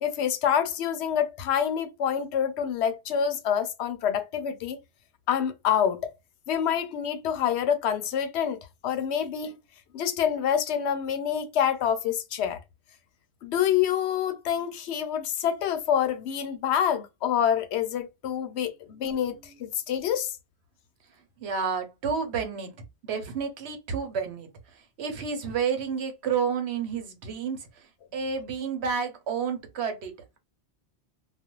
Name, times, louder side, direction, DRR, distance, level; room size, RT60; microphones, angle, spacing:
voice 1, 0.0-4.8 5.3-6.1 6.5-8.6 8.8-9.5 9.9-12.6 13.4-20.3, left 8 dB, 85° left, 0.8 m, -27 dB
voice 2, 19.1-19.6 21.4-22.7 23.0-27.8 28.1-30.4, right 6 dB, 80° right, 1.0 m, -31 dB
2.4 x 2.2 x 2.9 m
omnidirectional pair, 1.1 m